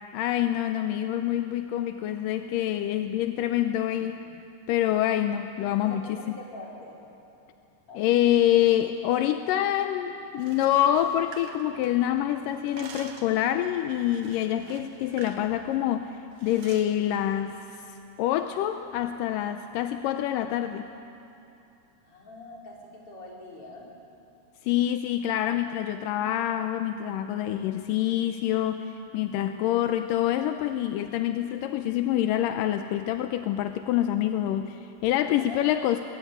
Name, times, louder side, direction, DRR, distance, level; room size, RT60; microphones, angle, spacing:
voice 1, 0.1-4.2 4.7-6.4 8.0-17.6 18.2-20.9 24.6-36.0, left 12 dB, 85° left, 8 dB, 2.4 m, -26 dB
voice 2, 5.8-7.0 7.9-8.0 22.0-23.9 35.4-35.6, left 2 dB, 40° left, -3 dB, 5.5 m, -44 dB
sound 1, 10.3-12.2 12.5-13.4 14.1-15.5 15.7-15.9 16.4-16.9, right 6 dB, 90° right, 3.5 m, -47 dB
25.5 x 21.5 x 9.4 m, 2.7 s
omnidirectional pair, 3.8 m